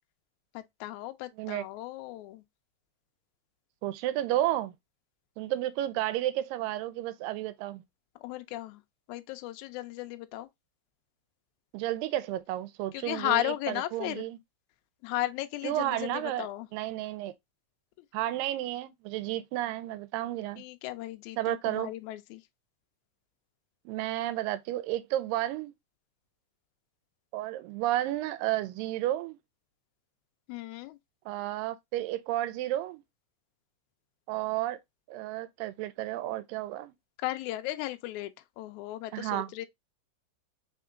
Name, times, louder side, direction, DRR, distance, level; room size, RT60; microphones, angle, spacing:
voice 1, 0.5-2.4 8.1-8.8 9.1-10.5 12.9-14.3 15.0-16.7 20.6-22.4 30.5-31.0 37.2-39.7, left 16 dB, 85° left, 1.7 m, -35 dB
voice 2, 3.8-4.7 5.4-7.8 11.7-14.4 15.6-16.5 16.7-17.3 18.1-20.6 21.4-21.9 23.9-25.7 27.3-29.4 31.3-33.0 34.3-34.8 35.1-36.9 39.1-39.5, right 14 dB, 85° right, 2.2 m, -32 dB
4.8 x 3.6 x 2.4 m
omnidirectional pair, 4.0 m